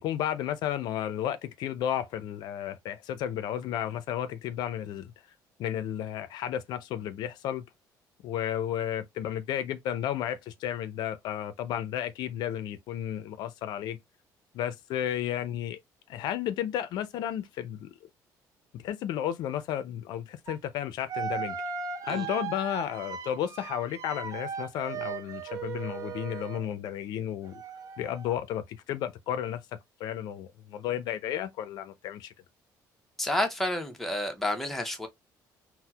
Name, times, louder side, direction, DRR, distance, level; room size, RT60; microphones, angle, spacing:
voice 1, 0.0-5.1 5.6-7.6 8.2-14.0 14.5-15.8 16.1-17.9 18.7-21.6 22.0-27.6 28.0-29.6 30.0-32.3, left 10 dB, 75° left, 0.4 m, -33 dB
sound 1, 20.5-20.6 21.1-26.7 27.4-28.3, right 7 dB, 50° right, 0.5 m, -37 dB
voice 2, 33.2-35.1, left 1 dB, 5° left, 0.7 m, -30 dB
4.2 x 2.0 x 2.2 m
cardioid pair, 120°, 7 cm